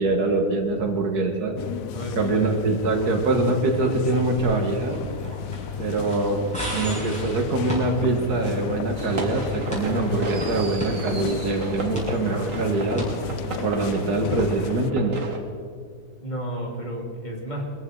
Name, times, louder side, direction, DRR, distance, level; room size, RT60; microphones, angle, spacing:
voice 1, 0.0-1.5 2.2-5.0 5.8-6.4 6.7-13.0 13.6-15.2, right 3 dB, 75° right, 4 dB, 2.0 m, -24 dB
sound 1, 1.6-14.9, left 9 dB, 70° left, 0.9 m, -33 dB
voice 2, 1.9-2.6 16.2-17.6, equal, 30° left, -1 dB, 2.7 m, -32 dB
sound 2, 4.4-14.9, equal, 5° left, 5.5 m, -36 dB
sound 3, 9.0-15.4, right 2 dB, 55° right, 1.8 m, -34 dB
23.0 x 15.0 x 3.9 m, 2.1 s
omnidirectional pair, 1.7 m